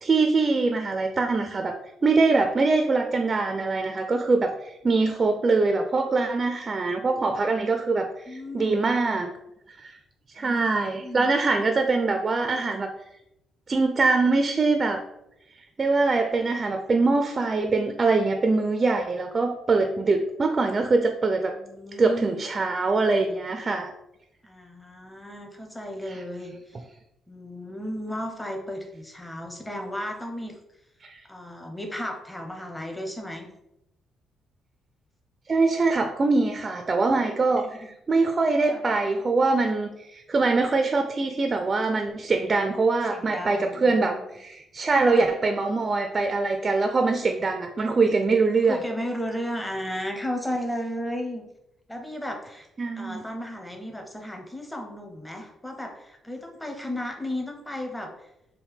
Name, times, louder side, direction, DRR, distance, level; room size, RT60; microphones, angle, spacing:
voice 1, 0.0-1.8 2.0-9.3 9.8-9.9 10.3-12.9 13.7-15.0 15.8-21.5 22.0-23.9 26.1-26.2 31.0-31.2 35.5-37.6 38.1-48.8 52.8-53.2, right 3 dB, 35° right, 5 dB, 0.4 m, -23 dB
voice 2, 8.3-8.7 10.3-10.6 11.0-11.3 21.5-22.4 24.4-26.8 27.3-30.6 31.3-33.5 37.5-37.9 38.6-38.8 43.1-44.3 45.1-45.3 48.7-51.4 51.9-52.7 53.0-58.3, left 1 dB, 10° left, 3 dB, 0.7 m, -34 dB
4.4 x 2.1 x 3.4 m, 0.83 s
cardioid pair, 90°, 0 cm